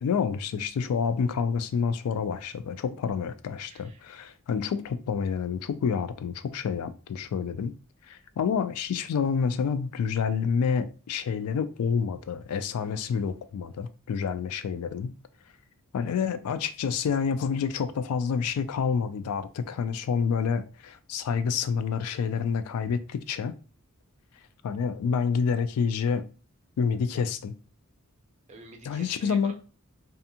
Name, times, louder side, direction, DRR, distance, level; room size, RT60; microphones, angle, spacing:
voice 1, 0.0-7.7 8.1-15.1 15.9-23.5 24.6-26.2 26.8-27.5 28.8-29.5, left 6 dB, 90° left, 0.3 m, -28 dB
voice 2, 3.6-4.0 28.5-29.5, right 4 dB, 30° right, 0.5 m, -47 dB
2.5 x 2.4 x 2.7 m
head